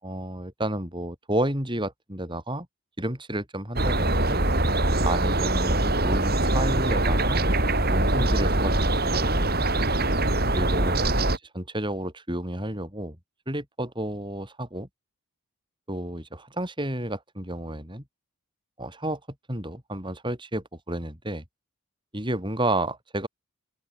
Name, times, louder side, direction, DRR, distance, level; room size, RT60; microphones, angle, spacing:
voice 1, 0.0-2.7 3.0-4.4 5.0-7.4 7.9-8.7 9.0-9.7 10.5-13.2 13.5-14.9 15.9-18.0 18.8-19.2 19.5-21.4 22.1-23.3, right 1 dB, 20° right, 7.7 m, -31 dB
sound 1, 3.8-11.4, right 1 dB, 45° right, 7.7 m, -23 dB
open air
head